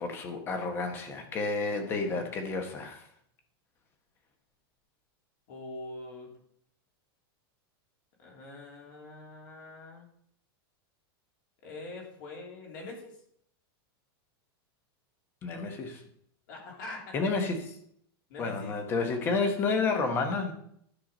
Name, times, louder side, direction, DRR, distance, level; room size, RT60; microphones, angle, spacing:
voice 1, 0.0-3.0 15.4-16.0 17.1-17.8 18.4-20.5, left 4 dB, 15° left, 5 dB, 1.1 m, -30 dB
voice 2, 1.8-2.3 5.5-6.3 8.2-10.1 11.6-13.2 16.5-17.3 18.3-18.7, left 2 dB, 50° left, -1 dB, 3.3 m, -44 dB
12.0 x 5.8 x 5.0 m, 0.68 s
supercardioid pair, 180°, 13 cm